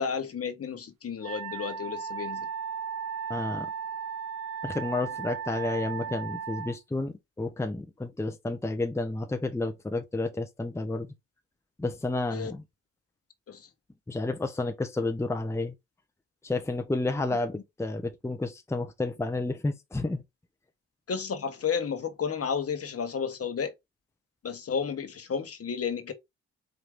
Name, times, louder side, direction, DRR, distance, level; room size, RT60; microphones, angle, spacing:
voice 1, 0.0-2.5 12.3-12.5 13.5-13.7 21.1-23.7 24.4-26.1, left 6 dB, 45° left, 1.2 m, -32 dB
Wind instrument woodwind instrument, 1.2-6.8, right 7 dB, 90° right, 0.5 m, -36 dB
voice 2, 3.3-3.7 4.6-11.1 11.8-12.6 14.1-15.7 16.4-20.2, left 2 dB, 10° left, 0.8 m, -31 dB
4.9 x 2.7 x 3.5 m
hypercardioid pair, 40°, 32 cm